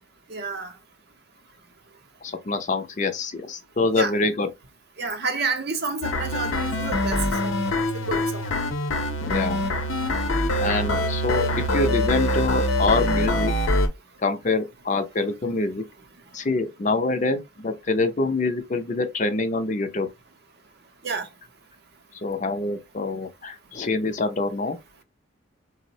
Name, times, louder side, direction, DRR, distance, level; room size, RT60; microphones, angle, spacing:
voice 1, 0.3-0.7 3.9-4.1 5.0-7.6 7.9-8.5 21.0-21.3, right 4 dB, 50° right, 0.6 m, -29 dB
voice 2, 2.2-4.5 9.2-9.6 10.6-13.5 14.2-15.8 16.3-20.1 22.2-24.8, left 3 dB, 35° left, 0.5 m, -25 dB
sound 1, 6.0-13.9, left 1 dB, 80° left, 0.6 m, -24 dB
3.8 x 2.0 x 2.6 m
head